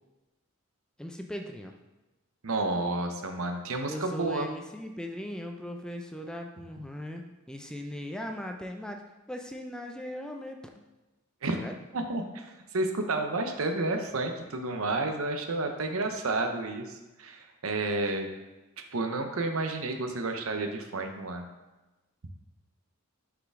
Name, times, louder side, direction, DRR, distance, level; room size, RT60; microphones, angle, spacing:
voice 1, 1.0-1.7 3.9-9.0 9.3-10.6 11.5-11.8, equal, 5° left, 3 dB, 0.4 m, -38 dB
voice 2, 2.4-4.5 11.4-11.6 11.9-18.3 18.9-21.4, right 2 dB, 85° right, 5 dB, 0.8 m, -31 dB
6.5 x 4.9 x 3.7 m, 1.1 s
head